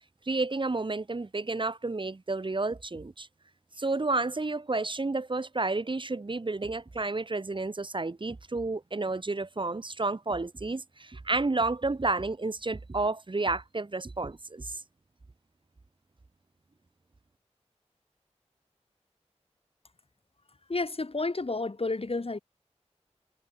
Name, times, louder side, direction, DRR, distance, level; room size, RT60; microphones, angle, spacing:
voice 1, 0.3-3.3 3.8-14.8, right 3 dB, 45° right, 1.0 m, -31 dB
voice 2, 20.7-22.4, left 3 dB, 55° left, 2.5 m, -31 dB
wide cardioid pair, 55°, 12 cm